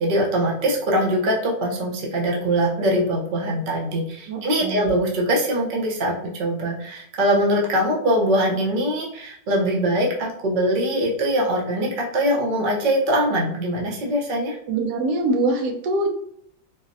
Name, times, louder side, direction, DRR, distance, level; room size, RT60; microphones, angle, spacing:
voice 1, 0.0-6.1 6.4-14.6, equal, 50° right, -2 dB, 0.6 m, -22 dB
voice 2, 4.3-4.9 14.7-16.1, right 2 dB, 85° right, 3 dB, 1.2 m, -24 dB
3.8 x 2.1 x 2.6 m, 0.68 s
omnidirectional pair, 1.8 m